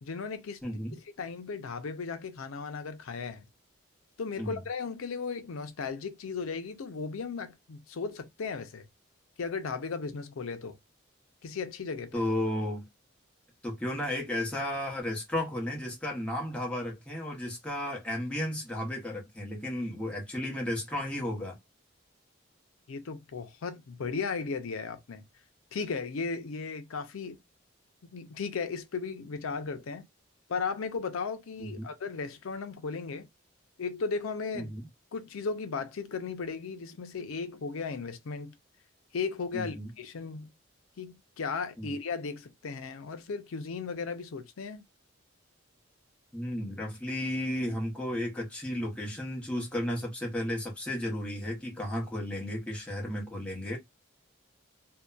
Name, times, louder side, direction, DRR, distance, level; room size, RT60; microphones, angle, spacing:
voice 1, 0.0-0.6 1.2-3.5 4.2-8.8 9.4-10.8 11.4-12.1 22.9-25.2 25.7-27.4 28.1-30.1 30.5-33.3 33.8-34.7 35.1-38.5 39.1-40.5 41.0-44.8, left 5 dB, 90° left, 0.5 m, -36 dB
voice 2, 0.6-1.0 4.4-4.6 12.1-12.9 13.6-21.6 31.6-31.9 34.5-34.9 39.5-39.9 41.8-41.9 46.3-53.8, left 1 dB, 5° left, 0.8 m, -33 dB
2.7 x 2.1 x 2.3 m
head